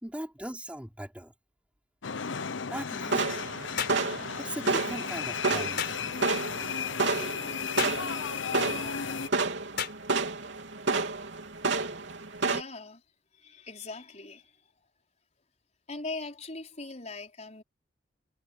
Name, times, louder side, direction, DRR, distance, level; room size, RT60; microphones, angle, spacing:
voice 1, 0.0-1.3 2.7-3.2 4.4-6.0, right 1 dB, 5° right, 4.0 m, -39 dB
sound 1, 2.0-9.3, left 6 dB, 85° left, 0.8 m, -35 dB
sound 2, 3.1-12.6, right 3 dB, 75° right, 3.5 m, -31 dB
sound 3, 3.8-4.0 5.8-6.0 7.8-8.0 9.8-10.0, left 7 dB, 60° left, 5.2 m, -32 dB
voice 2, 12.4-13.0 13.3-14.7 15.9-17.6, left 3 dB, 40° left, 4.9 m, -40 dB
head